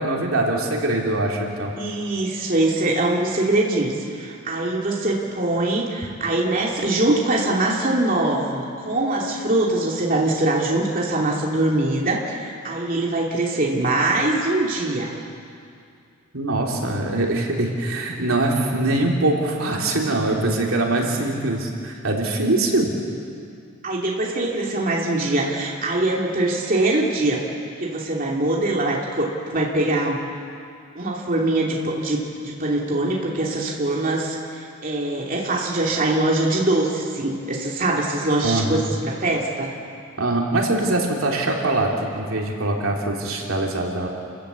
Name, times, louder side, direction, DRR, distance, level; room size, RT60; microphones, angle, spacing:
voice 1, 0.0-1.7 16.3-22.9 38.4-38.8 40.2-44.1, right 2 dB, 75° right, -1 dB, 3.3 m, -23 dB
voice 2, 1.8-15.1 18.2-18.3 23.8-27.4 27.8-30.2 30.9-39.7, right 2 dB, 40° right, -2 dB, 2.8 m, -23 dB
29.5 x 15.0 x 8.4 m, 2.4 s
head